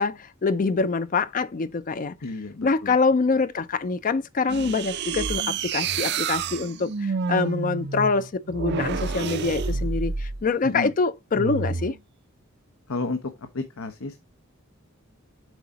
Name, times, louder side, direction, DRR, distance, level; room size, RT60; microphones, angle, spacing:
voice 1, 0.0-2.2 2.6-12.0, left 4 dB, 40° left, 0.4 m, -25 dB
voice 2, 2.2-3.0 10.6-10.9 12.9-14.2, left 3 dB, 90° left, 1.0 m, -31 dB
sound 1, 4.5-10.4 11.3-12.0, right 5 dB, 55° right, 0.6 m, -29 dB
8.1 x 4.8 x 3.9 m
head